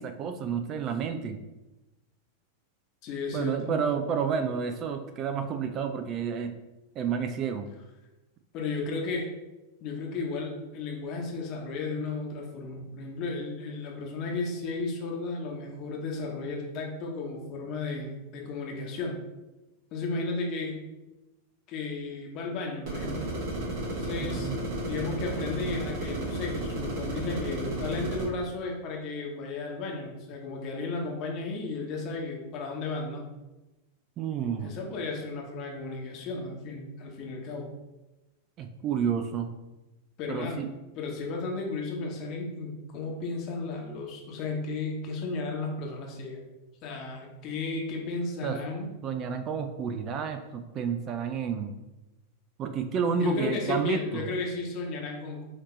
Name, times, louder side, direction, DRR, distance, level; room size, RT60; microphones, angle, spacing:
voice 1, 0.0-1.4 3.3-6.6 7.0-7.7 24.3-24.6 34.2-34.7 38.6-39.5 40.3-40.7 48.4-48.6 49.0-51.7 52.6-54.3, right 6 dB, 35° right, 7 dB, 0.3 m, -30 dB
voice 2, 3.0-3.8 8.5-9.3 9.8-19.2 19.9-20.8 21.7-23.3 23.9-24.5 24.9-33.2 34.6-37.7 40.2-40.6 40.9-46.4 46.8-48.9 53.1-55.4, left 3 dB, 40° left, 0 dB, 1.0 m, -34 dB
sound 1, 22.8-28.3, right 1 dB, 50° right, 1.3 m, -33 dB
5.8 x 2.8 x 3.0 m, 1.0 s
figure-of-eight pair, 90°, 0 cm